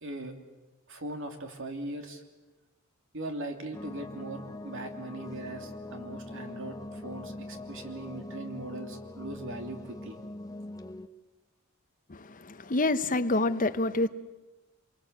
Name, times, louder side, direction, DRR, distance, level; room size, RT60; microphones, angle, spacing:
voice 1, 0.0-0.3 0.9-2.2 3.1-10.2, right 1 dB, 65° right, 5 dB, 3.1 m, -40 dB
sound 1, 3.7-11.1, left 1 dB, 20° left, 1.0 m, -42 dB
voice 2, 12.1-14.1, left 2 dB, 40° left, 10 dB, 1.0 m, -27 dB
26.5 x 23.5 x 8.2 m, 1.1 s
head